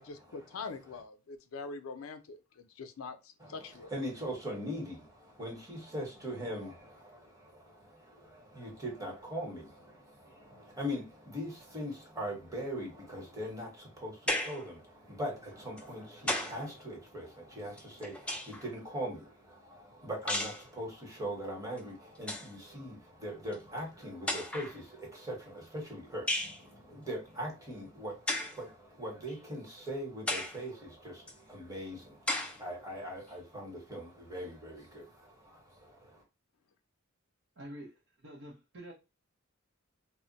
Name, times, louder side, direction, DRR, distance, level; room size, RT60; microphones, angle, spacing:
voice 1, 0.0-3.9, left 4 dB, 75° left, 0.5 m, -44 dB
voice 2, 3.4-36.2, equal, 15° right, 1.0 m, -41 dB
sound 1, 14.3-14.7 15.8-16.7 17.8-18.7 20.3-20.7 21.8-21.9 22.2-22.5 23.5-23.6 24.3-24.8 26.3-26.6 28.3-28.6 29.3-29.4 30.3-30.6 31.3-31.4 32.3-32.6, left 1 dB, 5° left, 0.3 m, -34 dB
voice 3, 37.6-38.9, right 1 dB, 60° right, 0.7 m, -47 dB
2.1 x 2.0 x 3.8 m
head